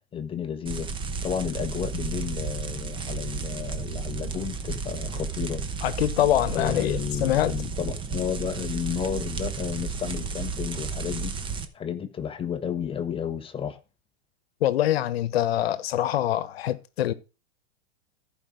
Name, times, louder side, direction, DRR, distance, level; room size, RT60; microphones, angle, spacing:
voice 1, 0.1-0.9 1.2-5.6 6.5-13.8, left 8 dB, 15° left, 0.9 m, -32 dB
sound 1, 0.7-11.7, right 5 dB, 15° right, 1.0 m, -33 dB
voice 2, 5.8-7.5 14.6-17.1, left 13 dB, 75° left, 1.1 m, -24 dB
14.0 x 5.1 x 5.0 m
supercardioid pair, 135°, 31 cm